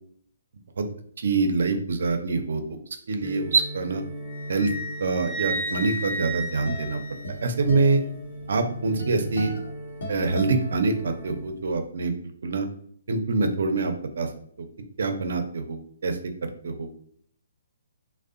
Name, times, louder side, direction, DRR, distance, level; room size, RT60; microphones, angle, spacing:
voice 1, 1.2-2.6 3.1-4.0 4.5-4.7 5.0-7.0 7.4-8.0 8.5-9.5 10.1-12.1 12.4-12.6 13.1-14.3 15.0-16.2 16.6-16.9, right 3 dB, 70° right, 7 dB, 0.4 m, -25 dB
sound 1, 3.2-11.4, right 1 dB, 15° right, 0.5 m, -40 dB
Wind instrument woodwind instrument, 4.2-7.7, right 1 dB, 30° left, 0.6 m, -33 dB
sound 2, 6.3-11.5, equal, 80° left, 0.8 m, -38 dB
2.6 x 2.0 x 2.4 m, 0.62 s
hypercardioid pair, 155°, 0 cm